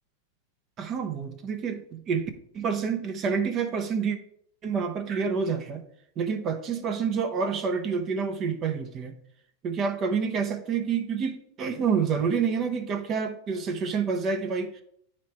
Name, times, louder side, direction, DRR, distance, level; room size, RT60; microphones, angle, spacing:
voice 1, 0.8-2.3 2.5-4.2 4.6-5.8 6.2-9.1 9.6-14.8, right 6 dB, 35° right, 0.8 m, -28 dB
9.3 x 3.2 x 4.3 m
supercardioid pair, 130°, 0 cm